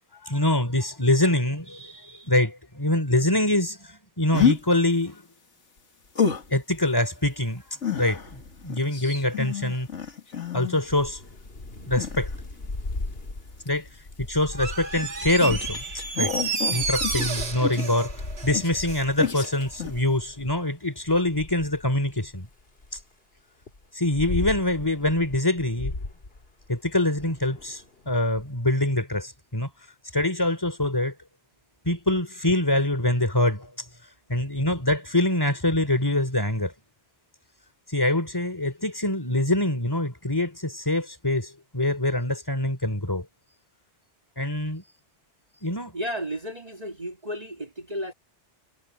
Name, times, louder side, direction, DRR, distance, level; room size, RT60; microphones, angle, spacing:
voice 1, 0.2-5.2 6.5-7.6 7.9-9.9 10.5-11.2 11.9-12.3 13.6-13.9 14.2-15.8 16.2-18.1 18.4-22.5 23.9-25.9 26.7-29.7 30.1-31.1 31.8-33.7 34.3-36.7 37.9-43.2 44.4-44.8 45.6-45.9, left 1 dB, 20° left, 3.2 m, -24 dB
sound 1, 4.3-4.6 6.2-6.5 7.8-10.9 12.0-12.8 13.6-13.8 14.6-18.3 18.5-18.9 19.2-19.5 19.8-20.0, left 7 dB, 85° left, 2.4 m, -29 dB
Thunder / Rain, 10.9-20.6 21.1-23.0 23.6-28.4, left 2 dB, 55° left, 2.8 m, -37 dB
Door, 14.5-19.1 19.4-19.5, right 4 dB, 60° right, 1.8 m, -31 dB
voice 2, 45.9-48.1, equal, 35° right, 2.1 m, -33 dB
omnidirectional pair, 1.2 m